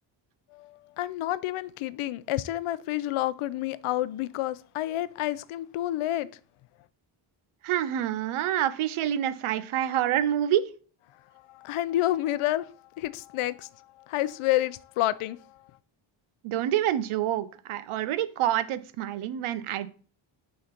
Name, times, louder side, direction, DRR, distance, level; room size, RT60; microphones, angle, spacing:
voice 1, 0.5-6.3 11.5-15.6, left 14 dB, 80° left, 0.6 m, -29 dB
voice 2, 7.6-10.7 16.4-19.9, right 11 dB, 80° right, 0.8 m, -27 dB
6.3 x 3.9 x 5.9 m
cardioid pair, 110°, 49 cm